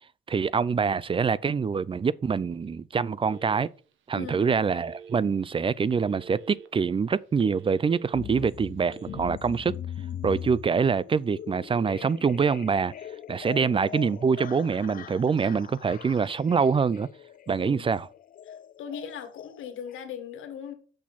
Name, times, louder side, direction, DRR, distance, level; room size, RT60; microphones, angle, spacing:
voice 1, 0.3-3.7 4.1-9.7 10.2-12.9 13.3-17.1 17.5-18.0, right 5 dB, 25° right, 0.4 m, -25 dB
Telephone, 3.2-3.9 4.4-5.2 5.9-6.7 7.1-8.2 8.8-9.2, right 6 dB, 80° right, 1.1 m, -46 dB
voice 2, 4.1-4.5 13.5-13.8 17.6-18.0 18.5-20.7, left 8 dB, 80° left, 1.8 m, -39 dB
sound 1, 8.1-20.0, left 10 dB, 45° left, 0.4 m, -41 dB
6.4 x 6.1 x 5.6 m
cardioid pair, 90°, 20 cm